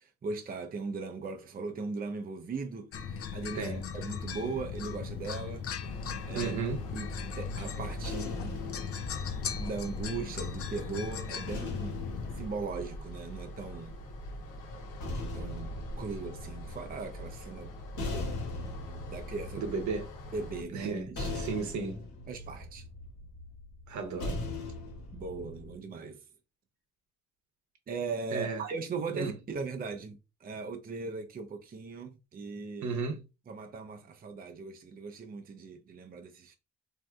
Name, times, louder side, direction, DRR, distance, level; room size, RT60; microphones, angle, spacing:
voice 1, 0.0-5.7 6.3-6.5 6.9-8.6 9.5-12.1 12.4-13.9 15.3-17.7 18.0-18.5 19.1-19.6 20.3-21.3 22.3-22.8 25.1-26.2 27.9-33.0 33.5-36.5, right 4 dB, 30° right, 0.5 m, -39 dB
sound 1, 2.9-12.5, left 6 dB, 50° left, 0.5 m, -38 dB
sound 2, 5.8-20.6, equal, 90° left, 1.0 m, -43 dB
voice 2, 6.3-6.8 19.6-20.1 20.7-22.0 23.9-24.4 28.3-28.6 29.1-29.3 32.8-33.3, right 4 dB, 70° right, 0.8 m, -34 dB
sound 3, 7.2-10.5 11.5-13.7 14.7-25.8, left 2 dB, 70° left, 1.2 m, -41 dB
3.2 x 2.6 x 2.3 m
cardioid pair, 90°, 30 cm